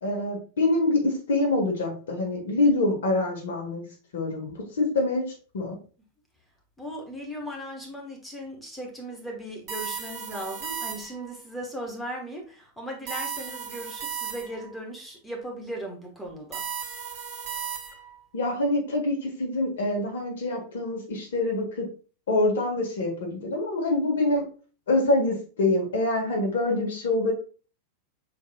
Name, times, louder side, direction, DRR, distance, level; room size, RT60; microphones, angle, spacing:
voice 1, 0.0-3.8 4.1-5.8 18.3-21.9 22.3-24.4 24.9-27.3, left 2 dB, 60° left, 2 dB, 1.4 m, -25 dB
voice 2, 6.8-16.6, equal, 5° left, 0 dB, 1.2 m, -37 dB
sound 1, 9.7-11.3 13.1-14.7 16.5-18.2, right 7 dB, 40° right, 1.1 m, -35 dB
6.3 x 3.5 x 2.2 m, 0.37 s
figure-of-eight pair, 90°, 0 cm